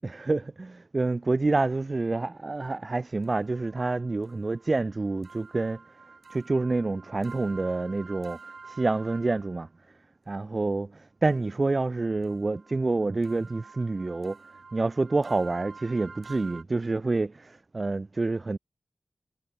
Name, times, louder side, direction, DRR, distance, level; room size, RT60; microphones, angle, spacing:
voice 1, 0.0-5.8 6.3-9.7 10.3-14.4 14.7-18.6, right 3 dB, 50° right, 0.7 m, -28 dB
sound 1, 3.2-9.7 11.2-16.6, right 4 dB, 80° right, 1.7 m, -49 dB
cardioid pair, 45°, 0 cm